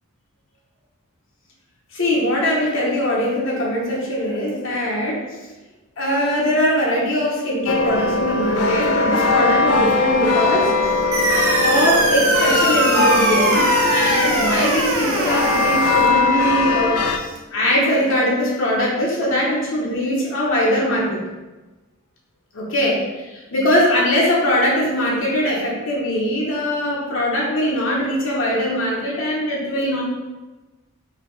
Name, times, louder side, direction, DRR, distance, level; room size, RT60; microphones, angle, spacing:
voice 1, 1.9-5.2 6.0-11.2 11.6-21.2 22.5-30.0, equal, 60° left, -4 dB, 0.8 m, -21 dB
sound 1, 7.7-17.2, left 3 dB, 85° left, 0.4 m, -20 dB
sound 2, 11.1-16.1, right 3 dB, 75° right, 0.7 m, -21 dB
4.8 x 2.7 x 3.1 m, 1.1 s
head